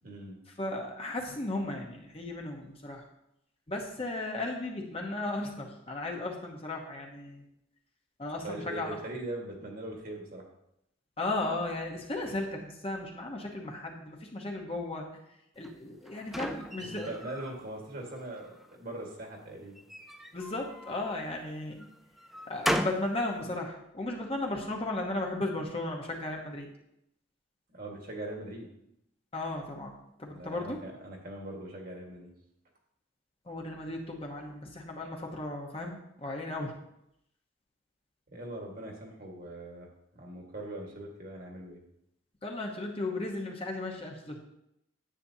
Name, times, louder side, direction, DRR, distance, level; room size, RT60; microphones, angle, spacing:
voice 1, 0.0-0.4 8.4-10.4 16.8-19.8 27.7-28.7 30.4-32.3 38.3-39.9 40.1-41.8, right 1 dB, 45° right, 0 dB, 1.7 m, -41 dB
voice 2, 0.6-3.0 3.7-7.4 8.2-9.0 11.2-15.2 15.6-17.2 20.3-21.9 22.5-26.7 29.3-29.9 30.2-30.8 33.4-36.7 42.4-44.4, left 2 dB, 30° left, 1 dB, 1.0 m, -35 dB
sound 1, 15.6-17.6 18.0-18.8 19.7-21.2 21.8-23.1, equal, ahead, 0.3 m, -36 dB
10.0 x 8.3 x 2.8 m, 0.81 s
head